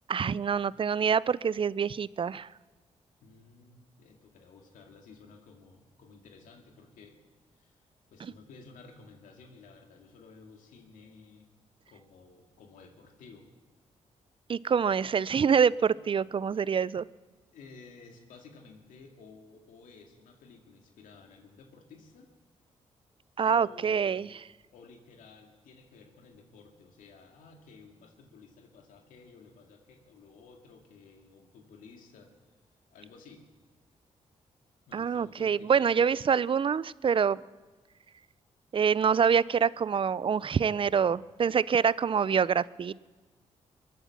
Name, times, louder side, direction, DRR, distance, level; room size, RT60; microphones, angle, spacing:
voice 1, 0.1-2.5 14.5-17.1 23.4-24.3 34.9-37.4 38.7-42.9, right 7 dB, 40° right, 21 dB, 0.4 m, -26 dB
voice 2, 3.2-7.2 7.5-11.5 11.9-13.5 17.5-22.3 23.4-24.3 24.7-32.3 32.9-33.5 34.9-36.2, left 4 dB, 85° left, 3 dB, 2.2 m, -54 dB
22.5 x 7.9 x 7.2 m, 1.3 s
supercardioid pair, 55°, 13 cm